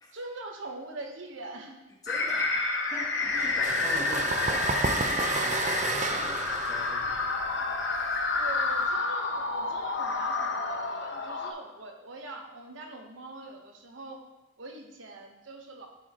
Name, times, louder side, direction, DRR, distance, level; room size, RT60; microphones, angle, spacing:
voice 1, 0.1-1.8 8.4-14.2 14.6-15.9, right 2 dB, 75° right, 3 dB, 1.1 m, -43 dB
voice 2, 2.0-8.4, left 1 dB, 20° left, -1 dB, 1.1 m, -44 dB
sound 1, 2.1-11.5, left 3 dB, 60° left, 0.8 m, -29 dB
sound 2, 3.4-8.9, right 4 dB, 35° right, 0.4 m, -32 dB
11.0 x 5.0 x 3.0 m, 0.99 s
head